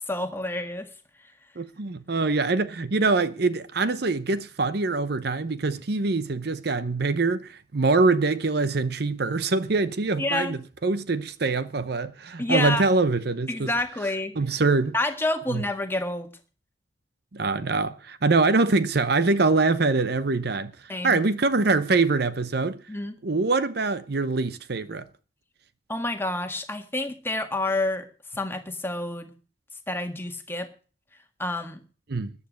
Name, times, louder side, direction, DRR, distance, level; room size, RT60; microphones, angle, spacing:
voice 1, 0.1-0.9 10.2-10.6 12.4-12.8 13.5-14.3 14.9-16.3 20.9-21.2 22.9-23.2 25.9-28.1 28.4-29.3 29.9-30.7 31.4-31.8, left 2 dB, 10° left, 1.7 m, -28 dB
voice 2, 1.6-13.7 14.4-14.9 15.5-15.6 17.3-20.7 21.0-22.8 23.2-25.0 32.1-32.3, right 3 dB, 55° right, 0.8 m, -24 dB
14.0 x 9.7 x 6.4 m
head